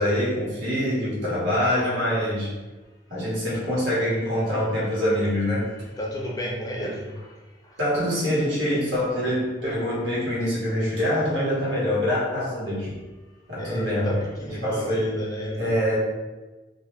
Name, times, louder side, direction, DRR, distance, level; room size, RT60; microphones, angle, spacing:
voice 1, 0.0-2.5 3.1-5.7 7.8-13.0 13.5-14.2 14.6-15.1 15.6-16.0, equal, 90° right, -7 dB, 1.1 m, -25 dB
voice 2, 6.0-7.1 13.6-16.0, equal, 20° left, -2 dB, 0.4 m, -32 dB
2.2 x 2.1 x 3.0 m, 1.2 s
head